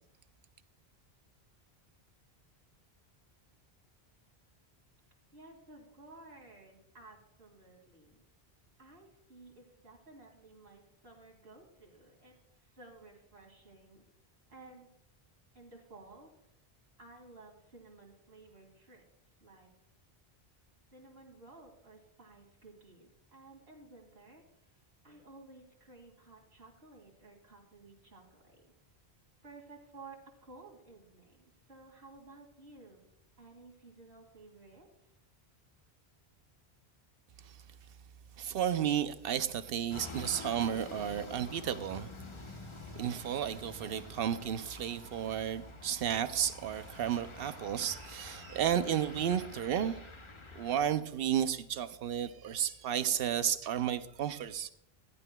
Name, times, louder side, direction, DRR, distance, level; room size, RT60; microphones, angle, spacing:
voice 1, 5.3-8.2 8.8-14.0 14.5-14.9 15.5-16.3 17.0-19.1 19.4-19.7 20.9-28.7 29.4-33.0 33.4-35.1, right 3 dB, 90° right, -1 dB, 2.6 m, -55 dB
voice 2, 38.4-42.1 43.0-50.0 50.5-54.7, right 9 dB, 70° right, 12 dB, 0.7 m, -33 dB
sound 1, 39.9-50.9, left 3 dB, 30° left, 0.7 m, -48 dB
15.0 x 11.0 x 2.2 m, 0.76 s
omnidirectional pair, 1.1 m